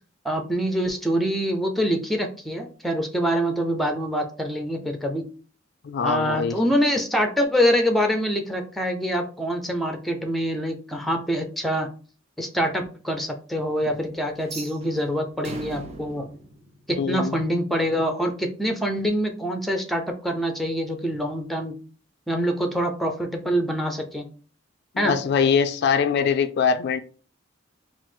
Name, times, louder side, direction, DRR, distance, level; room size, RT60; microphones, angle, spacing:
voice 1, 0.2-5.3 6.0-11.9 12.4-16.3 16.9-21.8 22.3-24.3 25.0-25.2, equal, ahead, 0.6 m, -25 dB
voice 2, 5.8-6.6 17.0-17.4 24.9-27.0, left 6 dB, 60° left, 0.3 m, -22 dB
sound 1, 14.4-17.5, right 2 dB, 35° right, 0.7 m, -40 dB
4.6 x 2.0 x 4.3 m
head